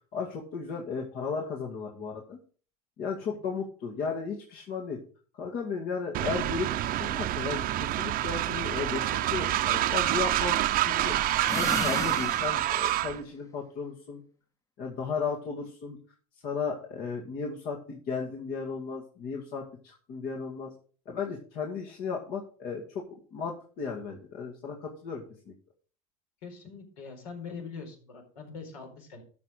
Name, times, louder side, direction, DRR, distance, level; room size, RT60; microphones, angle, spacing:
voice 1, 0.1-2.4 3.0-5.0 5.3-6.7 7.0-11.2 11.5-14.2 14.8-16.0 16.4-20.7 21.1-23.0 23.3-25.5, left 5 dB, 55° left, 0 dB, 2.3 m, -35 dB
Train, 6.1-13.2, right 14 dB, 50° right, 0.8 m, -27 dB
sound 1, 11.4-13.0, left 3 dB, 15° left, 1.1 m, -35 dB
voice 2, 26.4-29.2, left 5 dB, 70° left, 2 dB, 4.7 m, -43 dB
13.5 x 6.0 x 4.9 m, 0.41 s
hypercardioid pair, 95°, 19 cm